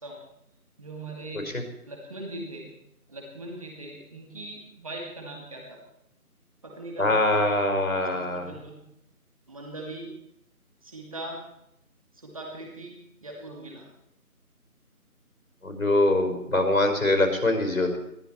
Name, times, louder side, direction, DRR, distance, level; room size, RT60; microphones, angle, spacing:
voice 1, 0.8-1.5 1.9-2.7 3.1-5.8 6.6-7.4 7.8-8.8 9.5-10.1 10.8-11.4 12.1-13.9, right 2 dB, 25° right, 0 dB, 2.5 m, -40 dB
voice 2, 7.0-8.5 15.6-18.0, left 2 dB, 65° left, 4 dB, 4.9 m, -23 dB
20.5 x 14.5 x 4.5 m, 0.80 s
figure-of-eight pair, 170°, 46 cm